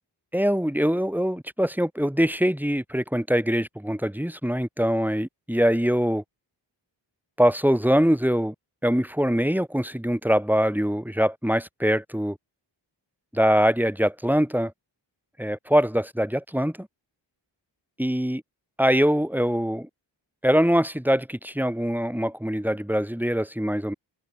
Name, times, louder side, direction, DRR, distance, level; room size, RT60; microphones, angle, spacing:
voice 1, 0.3-6.2 7.4-8.5 8.8-12.4 13.3-14.7 15.4-16.9 18.0-18.4 18.8-19.9 20.4-23.9, equal, 5° right, 7.9 m, -23 dB
wide cardioid pair, 115°, 44 cm